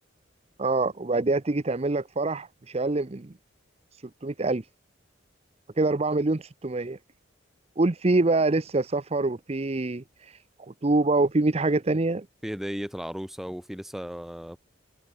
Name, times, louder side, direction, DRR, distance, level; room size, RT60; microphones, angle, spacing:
voice 1, 0.6-3.3 4.2-4.6 5.8-7.0 7.8-10.0 10.6-12.3, right 2 dB, 30° right, 0.7 m, -25 dB
voice 2, 12.4-14.6, equal, ahead, 1.0 m, -35 dB
head